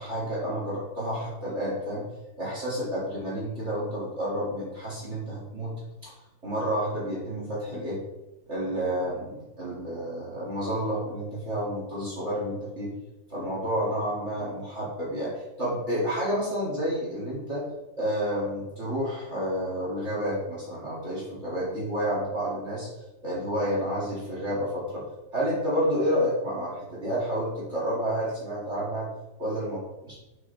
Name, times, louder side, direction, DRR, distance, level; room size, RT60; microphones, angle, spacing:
voice 1, 0.0-2.1 2.4-5.7 6.0-6.1 6.4-8.0 8.5-12.9 13.3-17.7 18.0-22.9 23.2-29.1 29.4-29.8 30.0-30.2, equal, 35° right, -6 dB, 2.8 m, -30 dB
9.6 x 6.1 x 3.4 m, 1.0 s
omnidirectional pair, 2.2 m